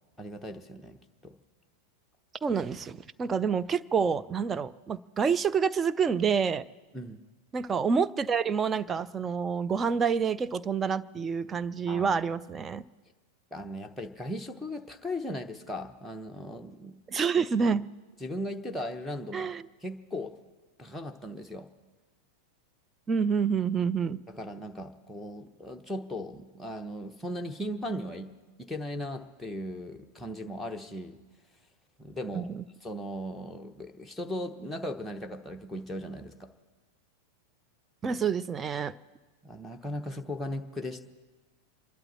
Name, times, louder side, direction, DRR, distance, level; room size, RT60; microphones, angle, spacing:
voice 1, 0.2-1.3 6.9-7.2 11.9-12.2 13.5-17.0 18.2-19.5 19.8-20.3 20.8-21.7 24.3-28.3 28.6-31.2 32.0-32.5 32.8-36.5 38.0-38.2 39.4-41.0, left 1 dB, ahead, 1 dB, 1.0 m, -37 dB
voice 2, 2.4-6.6 7.5-12.8 17.1-17.9 19.3-19.6 23.1-24.2 32.3-32.6 38.0-38.9, right 6 dB, 20° right, 14 dB, 0.5 m, -28 dB
27.0 x 12.0 x 4.4 m, 1.3 s
figure-of-eight pair, 90°, 0 cm